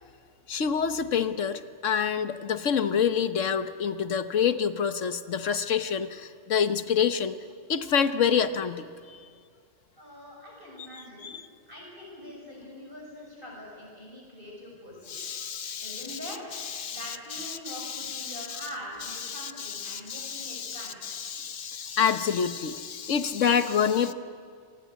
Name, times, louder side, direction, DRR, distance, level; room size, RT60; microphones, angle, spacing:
voice 1, 0.5-7.4 7.7-8.8 11.2-11.3 15.1-18.6 19.2-24.1, left 7 dB, 80° left, 10 dB, 1.5 m, -28 dB
voice 2, 10.0-11.3 11.7-15.1 15.8-16.4 16.9-21.3, equal, 45° right, -3 dB, 6.6 m, -43 dB
26.5 x 20.5 x 9.4 m, 2.1 s
omnidirectional pair, 1.3 m